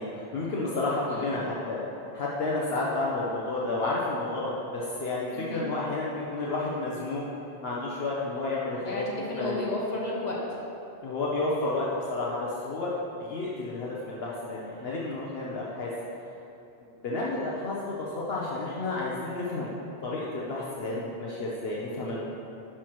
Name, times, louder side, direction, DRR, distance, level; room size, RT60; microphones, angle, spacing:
voice 1, 0.0-1.8 2.1-7.2 7.6-9.0 9.4-9.6 11.0-12.9 13.2-15.9 17.0-19.7 20.0-22.2, left 2 dB, 70° left, -5 dB, 1.1 m, -31 dB
voice 2, 8.8-10.4 20.9-21.0, left 2 dB, 40° left, -5 dB, 1.5 m, -33 dB
11.0 x 5.9 x 3.0 m, 2.9 s
omnidirectional pair, 1.1 m